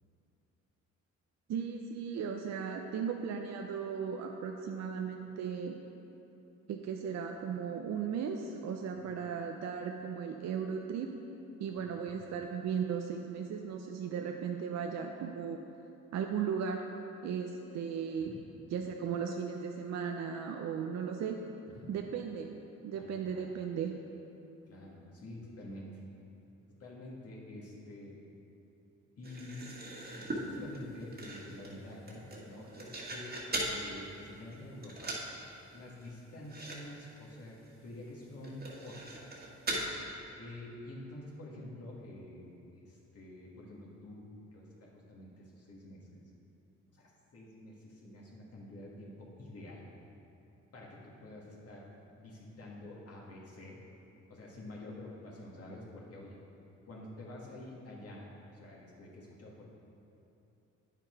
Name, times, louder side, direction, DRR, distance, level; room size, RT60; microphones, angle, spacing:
voice 1, 1.5-5.8 6.7-11.1 11.6-15.6 16.1-16.8 17.2-18.3 18.7-21.4 21.9-22.5 22.8-24.0, right 7 dB, 60° right, 3 dB, 0.6 m, -36 dB
voice 2, 22.9-23.5 24.7-26.0 26.8-28.1 29.2-29.7 30.1-33.4 33.7-35.1 35.7-39.0 39.3-39.4 39.7-39.8 40.4-42.5 42.7-46.2 46.9-49.8 50.7-51.9 52.2-53.8 54.3-56.4 56.9-58.3 58.5-59.6, left 1 dB, 50° left, -4 dB, 2.0 m, -48 dB
sound 1, 29.2-33.8 34.2-34.6 34.8-35.3 35.6-35.7 36.0-36.1 36.4-36.8 37.1-37.2 37.7-37.8 38.4-39.9, right 1 dB, 30° right, 1.6 m, -40 dB
9.2 x 5.9 x 4.6 m, 2.9 s
cardioid pair, 90°, 30 cm